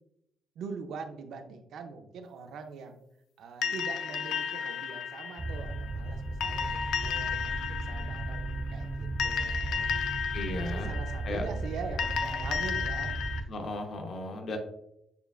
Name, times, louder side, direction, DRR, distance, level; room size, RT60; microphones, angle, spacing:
voice 1, 0.6-3.0 3.4-9.9 10.7-13.1, right 5 dB, 75° right, 6 dB, 0.5 m, -43 dB
sound 1, 3.6-13.4, left 6 dB, 90° left, 0.4 m, -34 dB
sound 2, 5.4-13.4, right 2 dB, 35° right, 0.9 m, -35 dB
voice 2, 10.3-11.5 13.5-14.6, left 2 dB, 55° left, 4 dB, 0.8 m, -36 dB
6.7 x 2.3 x 2.4 m, 0.80 s
cardioid pair, 90°, 0 cm